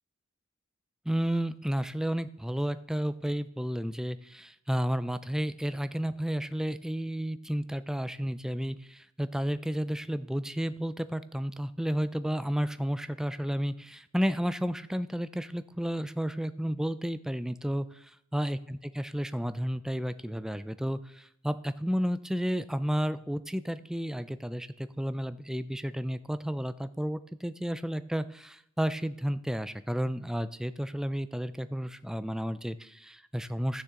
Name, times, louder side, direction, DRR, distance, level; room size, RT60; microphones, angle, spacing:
voice 1, 1.1-33.8, equal, 5° right, 13 dB, 0.3 m, -32 dB
14.5 x 6.6 x 3.7 m, 0.73 s
head